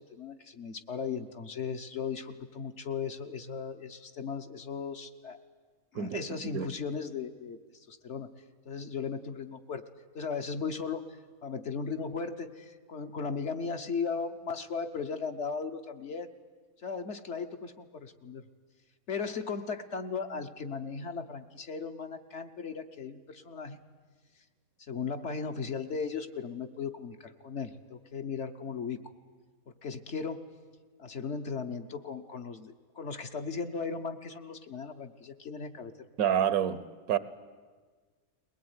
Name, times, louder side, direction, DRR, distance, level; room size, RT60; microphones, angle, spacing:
voice 1, 0.0-5.4 5.9-7.6 7.9-8.3 8.6-9.8 10.1-16.3 16.8-18.4 19.1-23.8 24.9-29.0 29.8-30.4 31.0-36.1, left 5 dB, 50° left, 6 dB, 1.3 m, -37 dB
voice 2, 5.9-6.7 36.2-36.8 37.1-37.2, right 9 dB, 75° right, 15 dB, 1.3 m, -28 dB
21.5 x 19.0 x 9.6 m, 1.5 s
omnidirectional pair, 1.6 m